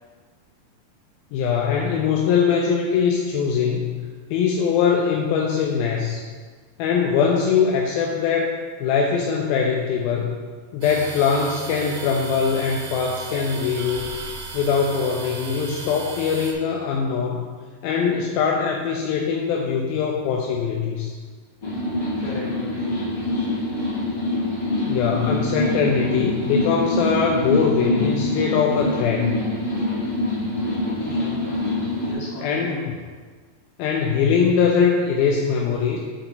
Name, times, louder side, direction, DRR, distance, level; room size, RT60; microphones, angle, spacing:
voice 1, 1.3-6.2 6.8-8.6 8.8-10.4 10.7-14.1 14.5-17.5 17.8-21.1 24.9-29.4 32.4-32.9 33.8-36.0, left 6 dB, 80° left, 0 dB, 2.2 m, -22 dB
sound 1, 10.8-16.5, right 4 dB, 75° right, 2.5 m, -36 dB
sound 2, 21.6-32.1, left 1 dB, 35° left, 1.2 m, -25 dB
voice 2, 22.2-22.9 24.8-25.0 25.5-25.7 30.7-31.6 32.0-32.9, left 2 dB, 55° left, -7 dB, 3.0 m, -37 dB
8.9 x 4.2 x 3.9 m, 1.5 s
omnidirectional pair, 4.6 m